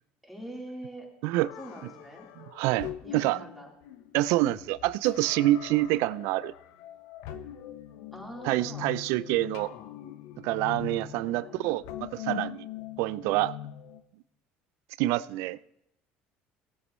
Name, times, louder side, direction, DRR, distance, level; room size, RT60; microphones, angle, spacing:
voice 1, 0.2-1.1 1.6-2.3 3.0-3.7 8.1-8.9 11.2-11.6, right 1 dB, ahead, 3.7 m, -43 dB
sound 1, 1.4-14.0, left 12 dB, 75° left, 0.8 m, -42 dB
voice 2, 2.4-3.4 4.1-6.5 8.4-9.7 10.4-12.7 13.0-13.5 15.0-15.6, right 16 dB, 75° right, 0.4 m, -27 dB
18.0 x 8.1 x 3.1 m
supercardioid pair, 90°, 5 cm